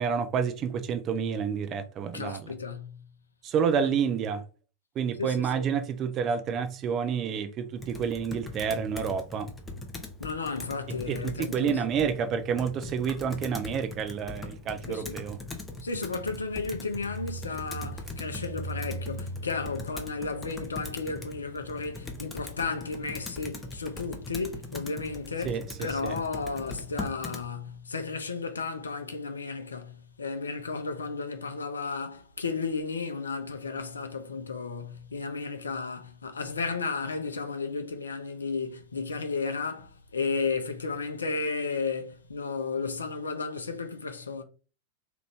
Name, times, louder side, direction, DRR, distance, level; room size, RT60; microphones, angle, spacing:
voice 1, 0.0-2.4 3.4-4.4 5.0-9.5 11.1-15.4 25.5-25.6 26.0-26.1, right 7 dB, 30° right, 0.5 m, -29 dB
voice 2, 2.1-3.0 3.7-3.9 5.2-5.7 10.2-11.8 14.9-15.2 15.8-44.4, left 4 dB, 75° left, 0.5 m, -33 dB
Computer keyboard, 7.8-27.5, left 1 dB, 10° left, 0.6 m, -40 dB
2.9 x 2.5 x 3.4 m
figure-of-eight pair, 90°, 0 cm